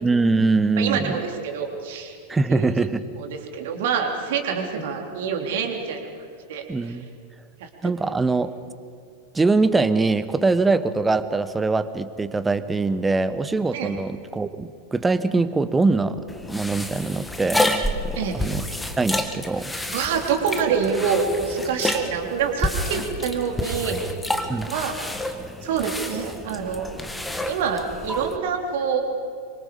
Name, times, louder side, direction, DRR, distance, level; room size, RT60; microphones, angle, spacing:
voice 1, 0.0-1.2 2.3-3.0 6.7-7.0 7.8-8.5 9.3-16.2 16.5-17.6 18.0-18.6 19.0-19.7 24.5-24.7, right 3 dB, 10° right, 14 dB, 1.0 m, -22 dB
voice 2, 0.8-2.2 2.5-2.8 3.2-6.0 6.5-7.0 7.6-7.9 13.7-13.9 18.1-18.3 19.7-24.0 24.7-24.9 25.6-27.0 27.5-29.1, right 6 dB, 55° right, 3 dB, 3.5 m, -26 dB
sound 1, 16.3-28.4, left 1 dB, 5° left, 1.6 m, -29 dB
27.0 x 25.0 x 5.1 m, 2.2 s
figure-of-eight pair, 90°, 0 cm